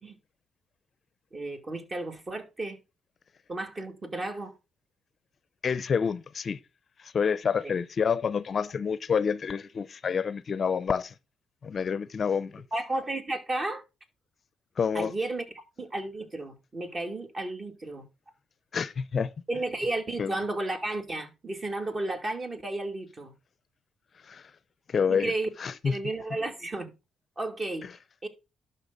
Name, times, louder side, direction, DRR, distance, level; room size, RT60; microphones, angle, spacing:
voice 1, 1.3-2.8 3.5-4.5 7.6-7.7 12.7-13.8 14.9-18.1 19.5-23.3 25.1-25.5 25.8-26.9 27.4-27.9 28.2-28.3, right 2 dB, 30° right, 2.4 m, -33 dB
voice 2, 5.6-6.6 7.0-11.1 11.6-12.6 14.8-15.1 18.7-19.3 20.2-20.3 24.3-24.4 24.9-25.3 25.6-25.9, left 6 dB, 45° left, 0.5 m, -28 dB
11.5 x 5.8 x 3.9 m
cardioid pair, 90°, 0 cm